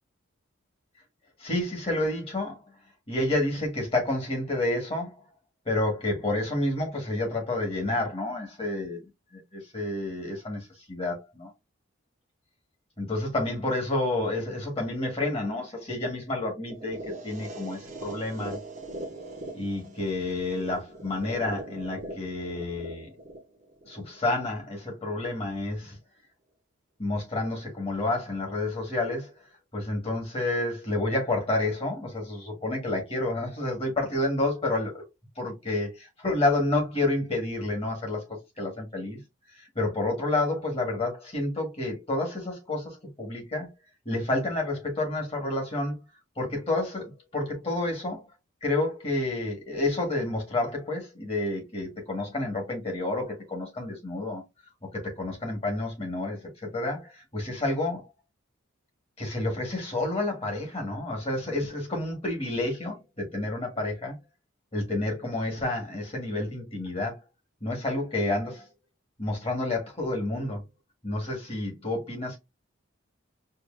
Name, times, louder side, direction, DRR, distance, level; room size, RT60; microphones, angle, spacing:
voice 1, 1.4-2.6 3.1-5.2 5.6-9.0 9.3-11.5 13.0-18.6 19.5-23.1 23.8-25.9 27.0-29.3 29.7-35.0 35.4-39.2 39.6-43.7 44.0-46.0 46.4-48.2 48.6-54.4 54.9-58.1 59.2-64.2 64.7-67.2 67.6-68.7 69.2-70.6 71.0-72.4, left 2 dB, 30° left, 1.6 m, -29 dB
sound 1, 16.7-24.7, right 1 dB, 35° right, 0.9 m, -41 dB
4.6 x 2.7 x 2.5 m
head